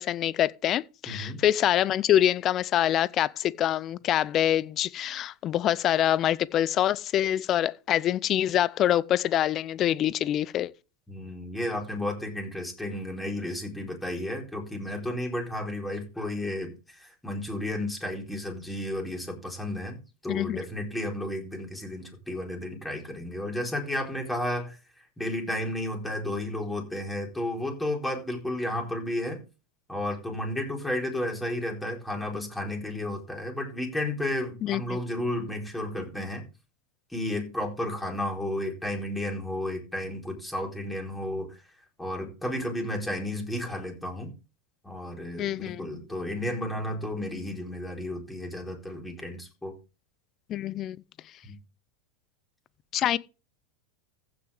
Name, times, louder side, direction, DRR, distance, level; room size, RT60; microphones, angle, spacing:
voice 1, 0.0-10.7 20.3-20.6 34.6-35.0 45.4-45.9 50.5-51.0 52.9-53.2, left 11 dB, 40° left, 0.6 m, -25 dB
voice 2, 1.1-1.4 11.1-20.0 20.2-29.4 29.9-36.4 37.1-41.6 42.0-44.3 44.8-49.8 51.4-51.6, left 1 dB, 5° left, 4.2 m, -32 dB
15.5 x 6.3 x 3.5 m
hypercardioid pair, 90°, 0 cm